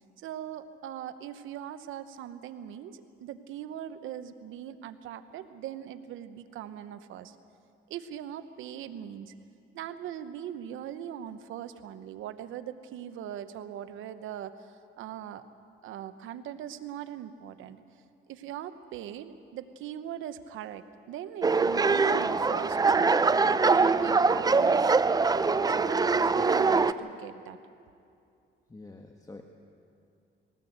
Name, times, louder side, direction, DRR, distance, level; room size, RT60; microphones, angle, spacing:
voice 1, 0.2-7.4 7.9-9.3 9.7-15.4 15.8-17.8 18.3-23.2 23.5-25.1 25.7-27.6, right 10 dB, 85° right, 11 dB, 1.0 m, -40 dB
sound 1, 21.4-26.9, right 4 dB, 20° right, 0.5 m, -23 dB
voice 2, 28.7-29.4, left 3 dB, 20° left, 4 dB, 1.2 m, -46 dB
20.0 x 17.5 x 7.9 m, 2.5 s
cardioid pair, 90°, 20 cm